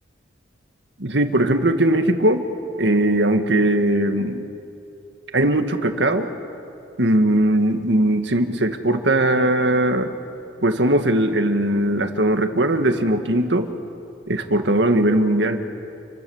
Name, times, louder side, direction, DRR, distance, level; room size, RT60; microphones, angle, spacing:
voice 1, 1.0-2.4 2.8-4.5 5.3-6.3 7.0-10.2 10.6-13.7 14.3-15.6, right 1 dB, 75° right, 6 dB, 1.8 m, -19 dB
28.5 x 25.5 x 7.2 m, 2.7 s
head